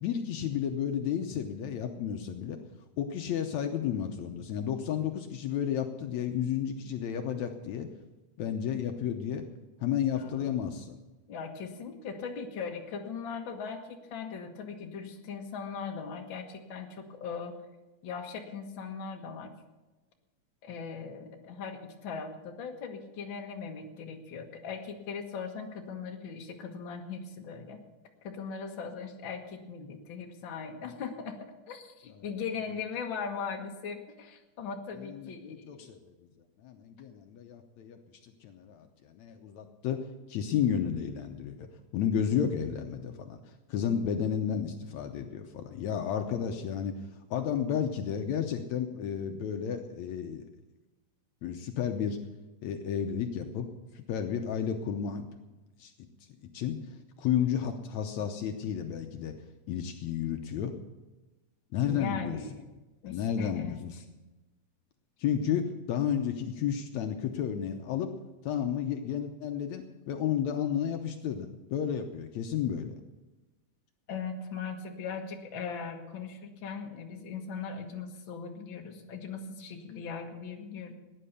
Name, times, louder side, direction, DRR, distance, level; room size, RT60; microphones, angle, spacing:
voice 1, 0.0-2.6 3.0-7.9 8.4-9.4 9.8-11.0 32.1-32.3 35.1-36.1 36.6-40.0 40.3-41.7 41.9-47.0 47.3-50.5 51.4-52.2 52.6-53.7 54.0-55.4 55.8-55.9 56.5-59.3 59.7-60.7 61.7-62.4 63.1-64.0 65.2-68.1 68.4-73.0, left 8 dB, 75° left, 5 dB, 2.1 m, -32 dB
voice 2, 10.1-10.8 11.3-17.5 18.0-19.5 20.6-27.8 28.2-31.4 31.7-35.9 61.8-62.7 63.0-63.8 74.1-80.9, left 5 dB, 50° left, 2 dB, 1.9 m, -39 dB
17.0 x 10.0 x 6.8 m, 1.1 s
omnidirectional pair, 3.4 m